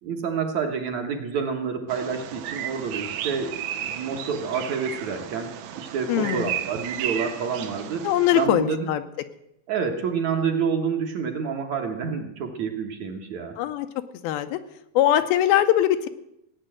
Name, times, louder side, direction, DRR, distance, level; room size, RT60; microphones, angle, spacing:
voice 1, 0.0-8.1 8.3-8.9 9.7-13.6, right 6 dB, 60° right, 3 dB, 2.2 m, -28 dB
Bird vocalization bird call bird song, 1.9-8.5, right 10 dB, 80° right, 2.8 m, -34 dB
voice 2, 6.1-6.5 8.0-9.0 13.6-13.9 14.2-14.6 15.0-16.1, left 12 dB, 85° left, 9 dB, 2.7 m, -21 dB
16.5 x 9.2 x 7.7 m, 0.80 s
omnidirectional pair, 4.3 m